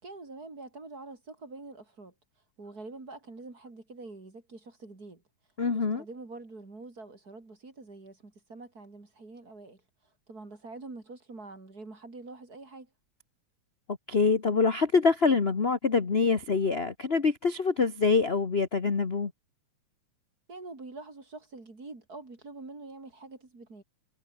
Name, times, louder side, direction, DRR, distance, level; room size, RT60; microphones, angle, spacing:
voice 1, 0.0-2.1 2.6-5.2 5.7-9.8 10.3-12.9 20.5-23.8, right 3 dB, 30° right, 4.3 m, -45 dB
voice 2, 5.6-6.0 14.1-19.3, left 4 dB, 35° left, 1.0 m, -25 dB
omnidirectional pair, 3.4 m